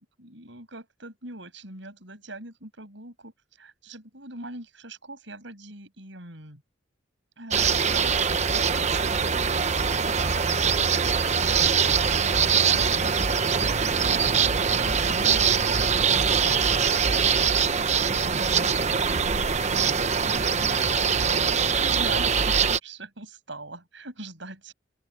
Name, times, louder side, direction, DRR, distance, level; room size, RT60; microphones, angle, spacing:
voice 1, 0.0-6.6 7.4-10.5 12.1-17.4 17.9-20.8 21.6-24.7, right 2 dB, 70° right, 8.0 m, -43 dB
sound 1, 7.5-22.8, right 6 dB, 35° right, 0.9 m, -23 dB
open air
head